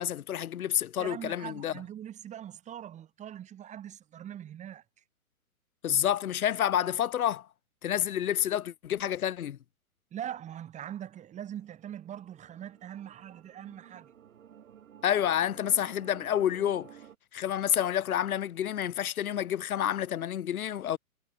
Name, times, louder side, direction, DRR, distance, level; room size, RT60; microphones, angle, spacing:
voice 1, 0.0-1.7 5.8-7.5 7.8-9.6 15.0-16.9 17.3-21.0, left 10 dB, 75° left, 0.8 m, -29 dB
voice 2, 1.0-4.8 10.1-14.1, right 10 dB, 15° right, 2.3 m, -42 dB
sound 1, 11.3-17.2, right 9 dB, 65° right, 5.5 m, -54 dB
hypercardioid pair, 130°, 43 cm